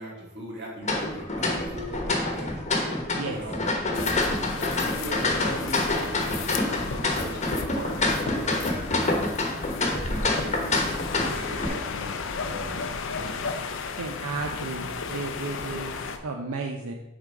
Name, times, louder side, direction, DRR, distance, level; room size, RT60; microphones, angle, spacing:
voice 1, 0.0-9.2 9.8-11.1 11.4-13.6, equal, 50° right, -3 dB, 1.9 m, -39 dB
sound 1, 0.8-11.7, left 2 dB, 35° left, 1.0 m, -27 dB
sound 2, 3.9-16.2, left 5 dB, 60° left, 0.5 m, -34 dB
voice 2, 14.0-16.9, right 3 dB, 80° right, 2 dB, 0.6 m, -33 dB
6.3 x 3.8 x 4.6 m, 0.94 s
head